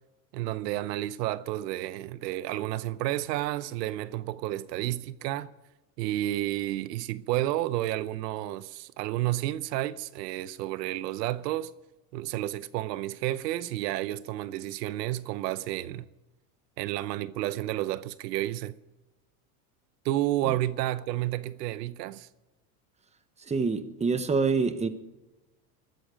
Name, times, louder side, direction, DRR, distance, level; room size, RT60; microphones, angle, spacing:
voice 1, 0.3-5.5 6.0-11.7 12.1-16.1 16.8-18.8 20.0-22.3, right 15 dB, 85° right, 0.9 m, -31 dB
voice 2, 23.5-24.9, right 4 dB, 15° right, 1.1 m, -26 dB
17.0 x 13.5 x 5.1 m
supercardioid pair, 125°, 48 cm